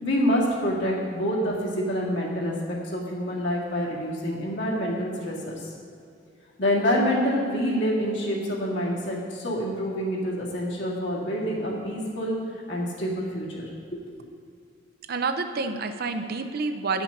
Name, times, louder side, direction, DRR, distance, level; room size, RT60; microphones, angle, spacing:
voice 1, 0.0-5.7 6.6-12.3 12.7-13.7 13.9-14.0, equal, 70° left, -4 dB, 1.9 m, -27 dB
voice 2, 15.1-17.0, right 4 dB, 55° right, 7 dB, 0.6 m, -28 dB
9.1 x 6.0 x 5.3 m, 2.5 s
head